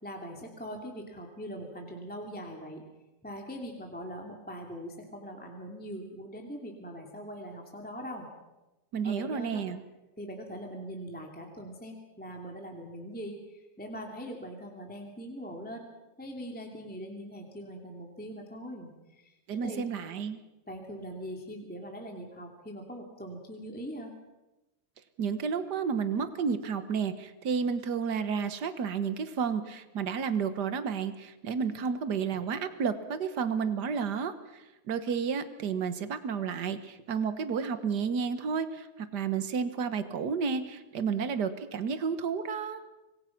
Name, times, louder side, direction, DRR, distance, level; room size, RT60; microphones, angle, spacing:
voice 1, 0.0-2.8 3.2-8.3 9.0-9.6 10.2-15.8 16.2-19.4 19.6-19.8 20.7-24.1, equal, 5° left, 2 dB, 2.4 m, -41 dB
voice 2, 8.9-9.8 19.5-20.4 25.2-42.8, right 6 dB, 50° right, 11 dB, 1.3 m, -31 dB
26.5 x 21.0 x 6.0 m, 1.0 s
omnidirectional pair, 3.3 m